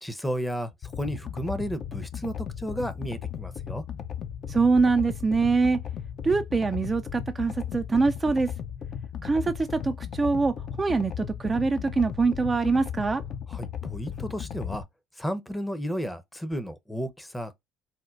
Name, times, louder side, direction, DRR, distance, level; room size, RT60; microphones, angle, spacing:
voice 1, 0.0-3.8 13.5-14.8 15.2-17.6, equal, 10° left, 0.6 m, -33 dB
sound 1, 0.8-14.8, left 8 dB, 50° left, 0.5 m, -36 dB
voice 2, 4.5-5.8 6.2-8.5 9.2-13.2, right 4 dB, 25° right, 0.3 m, -24 dB
4.2 x 2.1 x 2.4 m
hypercardioid pair, 70°, 0 cm